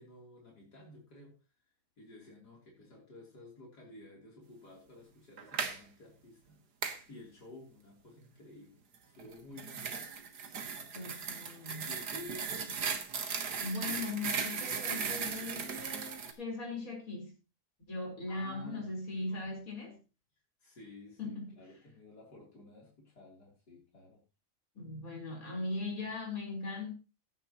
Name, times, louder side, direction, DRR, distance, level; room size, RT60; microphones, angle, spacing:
voice 1, 0.0-1.4 2.0-6.6 7.1-10.1 10.6-11.1 11.9-12.6 18.3-18.9 19.3-19.6 20.6-24.2 25.7-25.9, left 2 dB, 85° left, 3.9 m, -53 dB
sound 1, 5.4-5.8 6.8-7.0 9.2-16.3, right 6 dB, 85° right, 2.0 m, -37 dB
voice 2, 10.9-11.9 13.6-17.3 17.9-20.0 21.2-21.5 24.7-26.9, left 2 dB, 60° left, 4.7 m, -39 dB
15.5 x 10.5 x 3.0 m
omnidirectional pair, 1.7 m